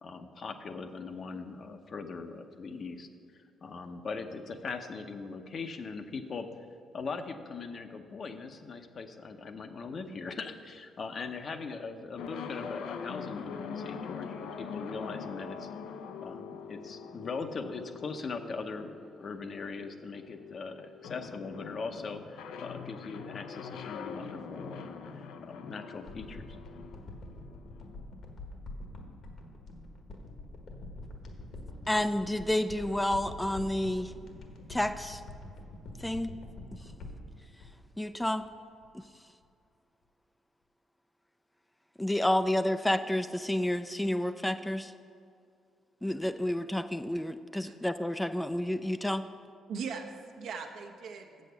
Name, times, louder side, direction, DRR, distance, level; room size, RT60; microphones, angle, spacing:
voice 1, 0.0-3.1 3.3-6.5 6.9-15.7 16.2-24.9 25.4-26.5, left 4 dB, 50° left, 7 dB, 0.7 m, -40 dB
sound 1, 12.2-27.9, left 6 dB, 85° left, 0.5 m, -43 dB
sound 2, 26.1-38.5 38.8-38.9, left 2 dB, 65° left, 1.4 m, -46 dB
voice 2, 31.9-34.1 34.7-35.2 36.0-36.3 38.0-38.4 38.9-39.0 42.0-44.9 46.0-49.2, left 1 dB, 10° left, 10 dB, 0.3 m, -30 dB
voice 3, 49.7-51.5, right 5 dB, 75° right, 3 dB, 1.0 m, -40 dB
7.5 x 6.4 x 6.8 m, 2.4 s
cardioid pair, 90°, 0 cm